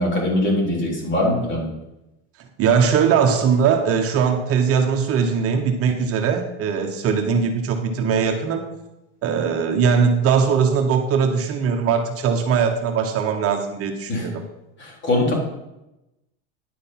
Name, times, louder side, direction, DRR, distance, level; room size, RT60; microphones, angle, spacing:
voice 1, 0.0-1.7 14.1-14.3 14.8-15.3, left 1 dB, 35° left, -2 dB, 4.1 m, -22 dB
voice 2, 2.6-8.6 9.2-14.4, right 6 dB, 40° right, 5 dB, 1.1 m, -20 dB
10.5 x 6.5 x 5.8 m, 0.94 s
supercardioid pair, 125°, 34 cm